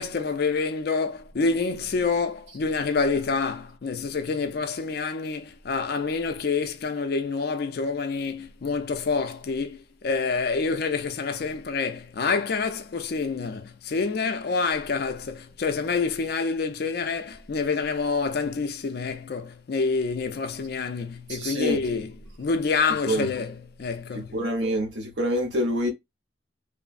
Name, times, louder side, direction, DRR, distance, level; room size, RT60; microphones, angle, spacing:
voice 1, 0.0-24.4, left 4 dB, 50° left, 0.4 m, -27 dB
voice 2, 21.3-21.8 23.1-23.3 24.1-25.9, equal, 60° right, 0.9 m, -26 dB
3.1 x 2.0 x 2.4 m
head